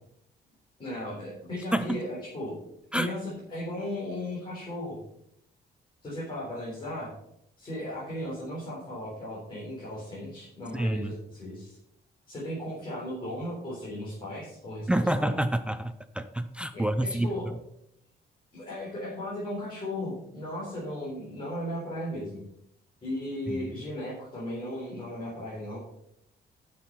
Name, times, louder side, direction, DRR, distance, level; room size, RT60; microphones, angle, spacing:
voice 1, 0.8-2.5 2.9-5.0 6.0-7.1 7.6-11.8 12.3-15.4 16.7-17.5 18.5-22.4 23.0-25.8, left 1 dB, 30° left, -7 dB, 3.9 m, -36 dB
voice 2, 10.7-11.1 14.9-17.3 23.5-23.6, right 1 dB, 5° right, 11 dB, 0.4 m, -28 dB
11.0 x 6.5 x 5.6 m, 0.76 s
cardioid pair, 160°, 18 cm